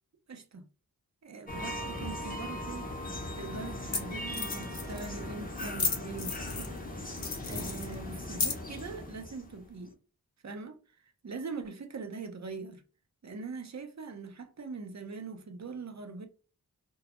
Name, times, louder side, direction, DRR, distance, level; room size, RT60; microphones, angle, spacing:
voice 1, 0.3-0.6 1.2-3.1 3.3-10.0 10.4-10.8 11.2-12.8 13.2-16.3, right 4 dB, 45° right, 0.5 m, -42 dB
sound 1, 1.5-9.8, left 1 dB, 25° left, 0.6 m, -39 dB
sound 2, 2.8-2.9 3.7-3.8 3.9-4.0 4.3-5.1 5.6-6.8 7.2-8.8, left 5 dB, 60° left, 0.6 m, -34 dB
2.2 x 2.0 x 2.8 m
wide cardioid pair, 40°, 38 cm